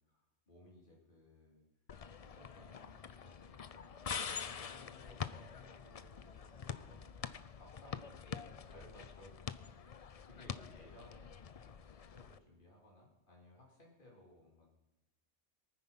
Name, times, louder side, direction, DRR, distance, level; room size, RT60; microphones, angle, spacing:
voice 1, 0.1-1.6 2.2-3.9 4.4-7.3 7.6-14.7, left 1 dB, 35° left, -2 dB, 3.8 m, -61 dB
sound 1, 1.9-12.4, left 6 dB, 70° left, 0.3 m, -46 dB
23.0 x 9.7 x 5.7 m, 1.0 s
omnidirectional pair, 1.5 m